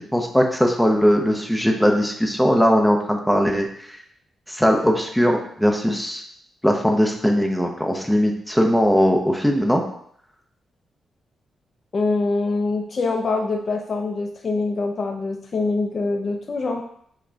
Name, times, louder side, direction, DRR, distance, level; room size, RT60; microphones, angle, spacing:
voice 1, 0.0-3.7 4.5-6.2 6.6-9.8, equal, 5° left, 2 dB, 0.6 m, -19 dB
voice 2, 11.9-16.8, left 3 dB, 40° left, 3 dB, 0.4 m, -24 dB
5.8 x 2.2 x 3.9 m, 0.65 s
cardioid pair, 115°, 0 cm